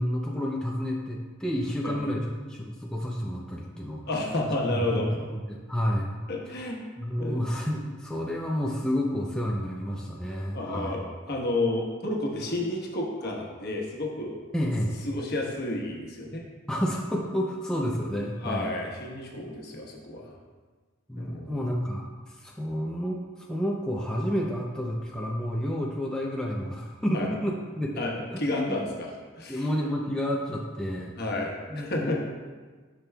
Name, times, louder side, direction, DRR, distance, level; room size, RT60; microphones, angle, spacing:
voice 1, 0.0-4.1 4.6-6.2 6.5-6.6 7.0-11.0 14.5-15.0 16.7-18.7 21.1-28.1 28.3-28.9 29.5-31.1 31.7-32.2, equal, 5° left, -3 dB, 0.5 m, -30 dB
voice 2, 4.1-5.2 6.3-6.8 7.2-7.5 10.5-11.0 11.3-14.4 15.0-16.4 18.4-20.3 21.2-21.6 27.1-27.3 28.0-29.6 31.2-32.2, left 2 dB, 55° left, -1 dB, 1.1 m, -31 dB
10.0 x 6.0 x 2.3 m, 1.4 s
head